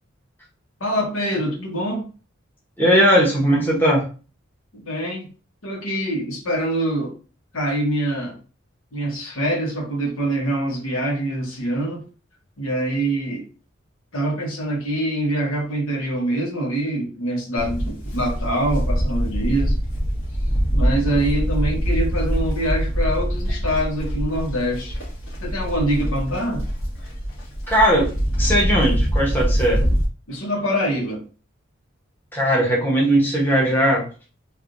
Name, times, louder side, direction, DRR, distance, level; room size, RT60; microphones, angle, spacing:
voice 1, 0.8-2.1 4.7-5.3 5.6-7.1 7.5-8.4 8.9-12.0 12.6-13.5 14.1-19.7 20.7-25.0 25.4-26.7 30.3-31.2, right 1 dB, 90° left, -1 dB, 1.2 m, -24 dB
voice 2, 2.8-4.0 27.7-28.1 28.4-29.8 32.3-34.1, equal, 10° left, -5 dB, 0.9 m, -18 dB
Livestock farm animals working animals, 17.6-30.0, equal, 75° left, 1.4 m, -24 dB
3.3 x 2.5 x 2.5 m, 0.35 s
head